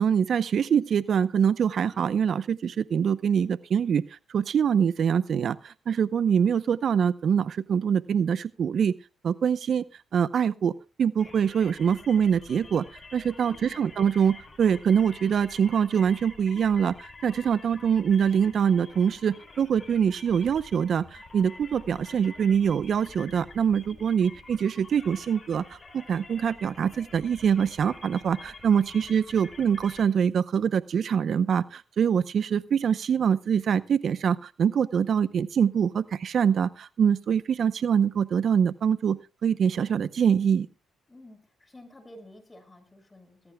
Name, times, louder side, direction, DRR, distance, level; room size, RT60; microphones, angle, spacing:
voice 1, 0.0-8.9 9.2-9.8 10.1-10.7 11.0-12.8 13.1-40.7, right 7 dB, 55° right, 15 dB, 0.7 m, -24 dB
sound 1, 11.2-30.0, left 3 dB, 35° left, 6.0 m, -48 dB
voice 2, 13.4-13.8 41.1-43.5, left 1 dB, 20° left, 7 dB, 6.7 m, -51 dB
19.5 x 15.5 x 2.2 m, 0.33 s
cardioid pair, 90°, 0 cm